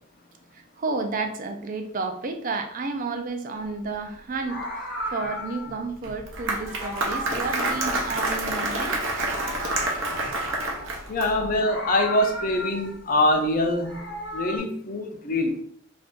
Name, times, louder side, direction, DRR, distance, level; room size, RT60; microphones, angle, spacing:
voice 1, 0.8-4.6 5.1-9.0, right 3 dB, 40° right, 5 dB, 0.4 m, -31 dB
Meow, 3.5-3.8 4.3-5.8 6.5-8.8 9.1-11.0 11.5-13.1 13.6-14.6, equal, 60° left, 0.9 m, -35 dB
Applause, 6.0-11.5, right 2 dB, 70° right, 0.7 m, -28 dB
voice 2, 11.1-15.6, left 1 dB, 45° left, 3 dB, 0.5 m, -24 dB
2.6 x 2.5 x 3.6 m, 0.65 s
head